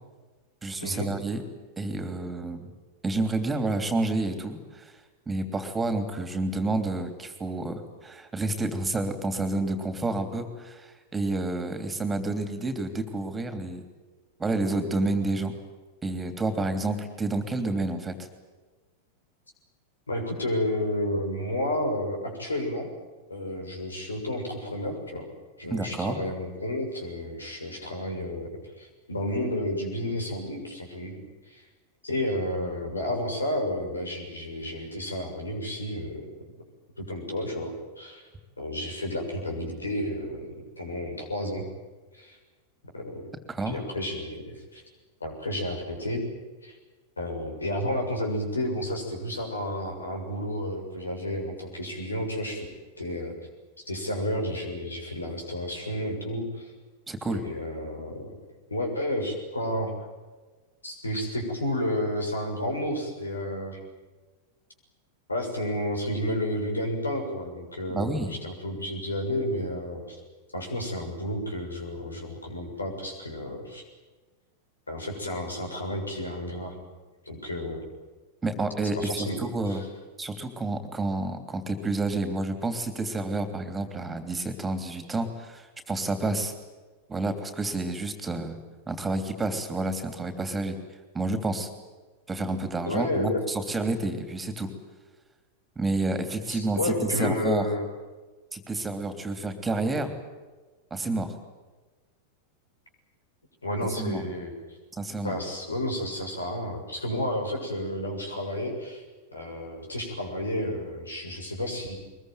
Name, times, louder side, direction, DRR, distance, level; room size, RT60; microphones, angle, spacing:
voice 1, 0.6-1.4 1.8-2.7 3.0-4.9 5.3-13.8 14.4-15.6 16.0-18.1 25.7-26.2 43.5-43.8 57.1-57.4 67.9-68.3 78.4-79.8 80.2-86.5 87.1-88.6 88.9-90.8 91.1-91.7 92.3-94.7 95.7-97.6 98.5-100.1 100.9-101.3 103.9-104.2 104.9-105.4, right 2 dB, 15° right, 9 dB, 3.2 m, -29 dB
voice 2, 20.1-22.9 23.3-25.3 25.6-28.5 28.8-31.2 31.5-31.6 32.0-36.3 37.0-38.3 38.6-41.7 42.1-42.4 42.9-43.3 43.7-44.8 45.2-46.2 46.6-46.8 47.2-52.7 53.0-53.3 53.8-56.7 57.3-58.3 58.7-59.9 60.8-63.8 65.3-70.2 70.5-73.8 74.9-76.8 77.3-77.8 79.0-79.8 92.9-93.4 96.5-97.8 103.6-104.5 105.2-109.0 109.3-111.9, left 1 dB, 80° left, 2 dB, 6.9 m, -31 dB
23.5 x 22.0 x 9.4 m, 1.3 s
figure-of-eight pair, 90°, 0 cm